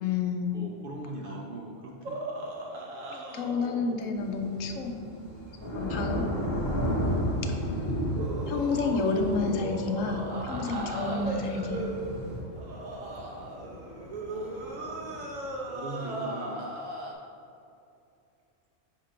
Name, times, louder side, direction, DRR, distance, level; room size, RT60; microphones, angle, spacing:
voice 1, 0.0-0.6 3.3-5.1 5.7-6.3 7.4-7.5 8.5-11.8, left 4 dB, 80° left, 4 dB, 1.0 m, -30 dB
voice 2, 0.5-2.3 14.3-16.7, right 2 dB, 55° right, 0 dB, 0.6 m, -41 dB
sound 1, 2.0-5.5 6.6-7.1 8.1-17.1, right 1 dB, 85° right, 1.2 m, -37 dB
Thunder / Rain, 4.2-12.4, equal, 20° left, 1.3 m, -32 dB
sound 2, 6.8-15.5, equal, 35° left, 0.9 m, -49 dB
6.5 x 2.9 x 5.0 m, 2.6 s
omnidirectional pair, 1.3 m